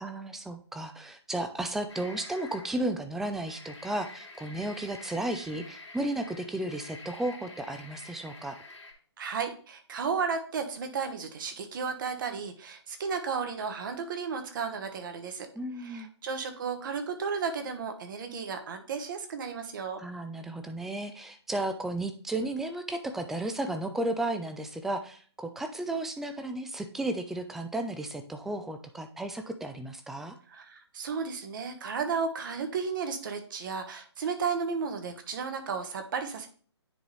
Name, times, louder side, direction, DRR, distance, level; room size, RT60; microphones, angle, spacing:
voice 1, 0.0-8.6 15.6-16.1 20.0-30.4, right 1 dB, ahead, 7 dB, 0.4 m, -34 dB
sound 1, 1.9-2.9 3.3-8.9, left 2 dB, 85° left, 2.3 m, -48 dB
voice 2, 9.2-15.5 15.8-20.0 30.5-36.5, right 5 dB, 45° right, 7 dB, 1.3 m, -33 dB
9.9 x 3.8 x 3.2 m, 0.42 s
figure-of-eight pair, 140°, 15 cm